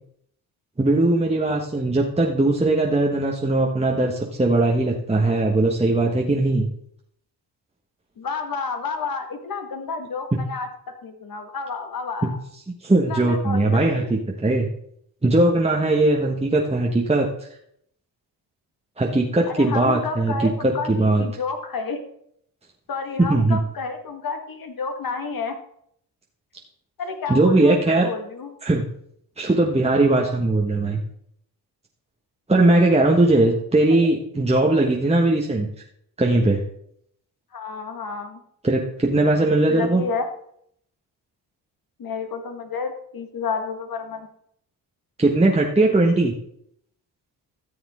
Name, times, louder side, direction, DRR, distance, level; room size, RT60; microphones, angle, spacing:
voice 1, 0.8-6.7 12.8-14.7 15.2-17.3 19.0-20.3 20.6-21.2 23.2-23.6 27.3-28.1 28.6-28.8 29.4-31.0 32.5-35.7 36.2-36.6 38.6-40.0 45.2-46.3, right 2 dB, 15° right, -1 dB, 1.4 m, -19 dB
voice 2, 8.2-10.7 11.0-12.4 12.9-14.1 19.6-22.0 22.9-25.5 27.0-28.6 34.0-34.1 37.5-38.4 39.7-40.3 42.0-44.3, left 4 dB, 60° left, 6 dB, 1.7 m, -30 dB
13.0 x 7.1 x 3.7 m, 0.68 s
supercardioid pair, 60°, 40 cm